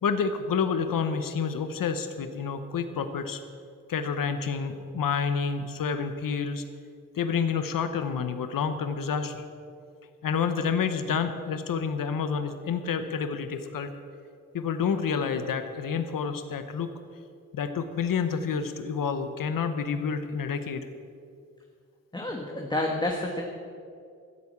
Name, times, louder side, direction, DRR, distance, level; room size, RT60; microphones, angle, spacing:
voice 1, 0.0-3.4 3.9-6.6 7.1-9.4 10.2-13.9 14.5-16.9 17.5-20.9, left 6 dB, 90° left, 9 dB, 1.0 m, -29 dB
voice 2, 22.1-23.4, left 2 dB, 15° left, 0 dB, 1.3 m, -29 dB
14.5 x 8.6 x 8.6 m, 2.3 s
wide cardioid pair, 125°, 32 cm